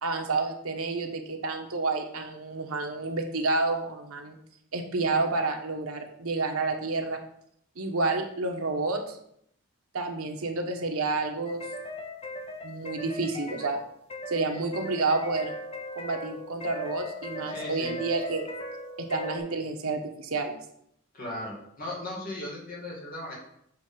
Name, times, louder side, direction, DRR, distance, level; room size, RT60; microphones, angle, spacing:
voice 1, 0.0-4.4 4.7-7.2 7.8-9.2 9.9-11.7 12.6-13.8 14.3-15.5 16.0-18.5 19.0-20.6, right 3 dB, 85° right, 4 dB, 1.0 m, -29 dB
sound 1, 11.5-19.4, left 1 dB, 25° left, 0.7 m, -38 dB
voice 2, 17.5-17.9 21.1-23.3, left 1 dB, 40° left, -3 dB, 2.1 m, -37 dB
7.4 x 3.3 x 5.3 m, 0.72 s
head